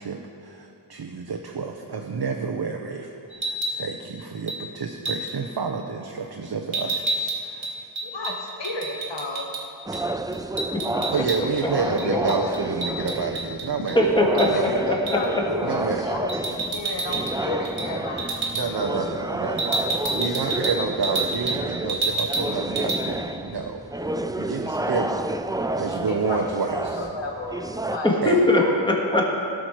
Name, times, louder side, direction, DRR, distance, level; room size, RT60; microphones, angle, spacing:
voice 1, 0.0-7.9 9.9-10.0 11.1-14.0 14.5-14.8 15.6-16.0 18.5-25.2 25.8-27.0 28.2-28.4, right 5 dB, 55° right, 3 dB, 0.7 m, -29 dB
sound 1, 3.3-3.8 4.5-4.6 5.0-5.3 6.7-9.6 9.9-10.0 10.3-11.6 12.0-14.0 14.4-14.5 15.1-15.3 16.3-17.4 17.6-17.9 18.2-18.7 19.6-21.6 21.9-22.5 22.8-23.0, right 3 dB, 75° right, 1.6 m, -28 dB
voice 2, 8.0-9.5 12.0-12.5 14.4-18.5 26.0-28.3 28.5-28.8, left 2 dB, 65° left, 0 dB, 1.1 m, -32 dB
sound 2, 9.9-28.0, right 2 dB, 10° right, 0.3 m, -30 dB
voice 3, 10.7-11.0 13.9-15.2 28.0-29.2, left 1 dB, 10° left, -1 dB, 1.7 m, -21 dB
17.0 x 6.3 x 4.6 m, 2.6 s
wide cardioid pair, 75°, 47 cm